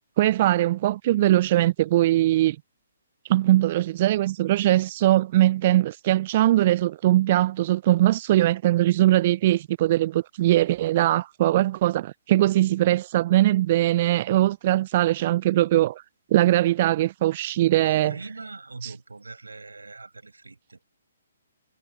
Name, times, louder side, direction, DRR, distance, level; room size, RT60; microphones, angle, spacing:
voice 1, 0.2-2.6 3.3-16.0 16.3-18.1 18.8-18.9, right 14 dB, 40° right, 0.5 m, -21 dB
voice 2, 17.6-20.9, right 3 dB, 80° right, 6.8 m, -42 dB
figure-of-eight pair, 130°, 0 cm